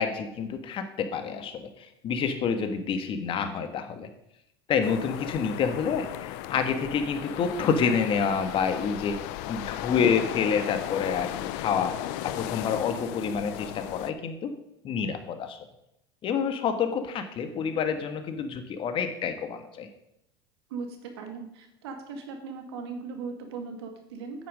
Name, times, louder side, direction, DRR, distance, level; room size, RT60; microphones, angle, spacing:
voice 1, 0.0-4.1 4.7-9.2 9.5-11.9 12.2-14.5 14.8-15.6 16.2-19.9, left 6 dB, 40° left, 8 dB, 1.6 m, -28 dB
sound 1, 4.8-14.1, left 13 dB, 60° left, 0.7 m, -36 dB
voice 2, 20.7-24.5, right 5 dB, 75° right, 5 dB, 2.2 m, -38 dB
9.2 x 8.8 x 5.2 m, 0.79 s
hypercardioid pair, 95°, 13 cm